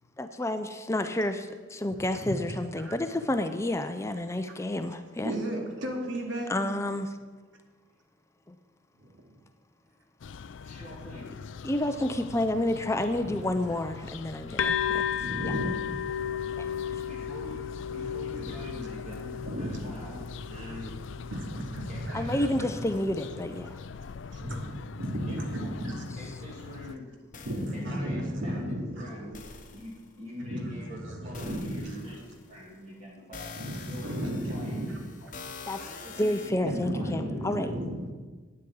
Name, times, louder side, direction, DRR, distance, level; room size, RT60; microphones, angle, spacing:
voice 1, 0.2-5.3 6.5-7.1 8.5-8.6 11.6-15.0 15.4-15.5 16.6-17.0 22.1-23.8 35.7-37.7, left 1 dB, 15° left, 8 dB, 0.5 m, -30 dB
voice 2, 5.2-6.7 9.0-9.4 13.2-13.4 15.2-15.7 18.4-18.6 19.4-19.8 21.3-22.6 23.9-24.7 25.0-26.0 27.4-29.1 30.4-32.2 33.5-35.1 35.8-35.9 36.6-38.1, equal, 70° right, 1 dB, 2.4 m, -34 dB
sound 1, 10.2-27.0, left 5 dB, 65° left, 0.4 m, -43 dB
voice 3, 10.6-11.3 17.1-17.6 17.9-20.2 20.5-20.9 21.9-23.5 25.3-25.7 26.1-27.1 27.7-29.4 29.7-31.0 31.2-32.2 32.5-33.5 33.9-35.3 36.0-37.3, equal, 35° right, -5 dB, 2.2 m, -44 dB
sound 2, 14.6-22.1, left 8 dB, 85° left, 0.7 m, -34 dB
sound 3, 27.3-27.9 29.3-30.1 31.3-32.7 33.3-36.5, left 4 dB, 40° left, 1.0 m, -45 dB
9.7 x 8.0 x 8.6 m, 1.4 s
head